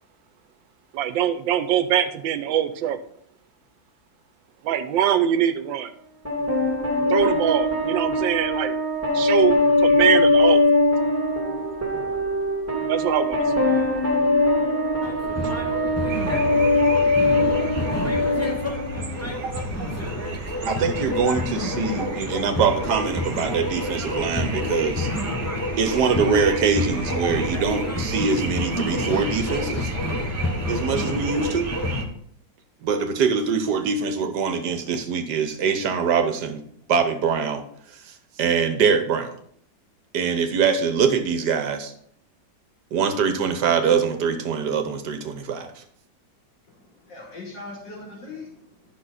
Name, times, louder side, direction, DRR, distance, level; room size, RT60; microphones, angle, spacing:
voice 1, 0.9-3.0 4.6-5.9 7.1-8.8 9.1-10.6 12.9-13.4, right 10 dB, 90° right, 12 dB, 1.4 m, -23 dB
sound 1, 6.3-19.3, left 2 dB, 10° right, 1.7 m, -21 dB
sound 2, 15.0-32.0, left 1 dB, 15° left, 0.6 m, -29 dB
sound 3, 16.1-32.0, right 3 dB, 50° right, 1.2 m, -35 dB
voice 2, 20.7-25.1 25.8-29.9 30.7-31.7 32.8-36.6 36.9-37.6 38.1-39.3 40.1-41.9 42.9-45.8, right 6 dB, 65° right, 8 dB, 1.4 m, -23 dB
voice 3, 46.7-48.8, left 3 dB, 70° left, -2 dB, 3.3 m, -40 dB
10.0 x 6.2 x 4.1 m, 0.66 s
omnidirectional pair, 2.0 m